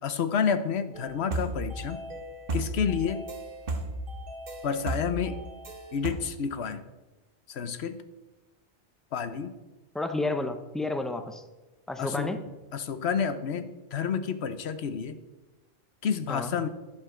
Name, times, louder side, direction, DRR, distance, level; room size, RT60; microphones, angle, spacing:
voice 1, 0.0-2.0 2.5-3.3 4.6-5.4 5.9-6.9 7.5-8.0 9.1-9.6 12.0-12.3 12.7-15.2 16.0-16.7, left 7 dB, 70° left, 11 dB, 1.0 m, -29 dB
sound 1, 0.9-6.1, right 2 dB, 55° right, 1.3 m, -35 dB
voice 2, 9.9-11.4 11.9-12.4 16.3-16.5, left 2 dB, ahead, 8 dB, 0.6 m, -31 dB
11.0 x 7.1 x 6.1 m, 1.1 s
omnidirectional pair, 1.1 m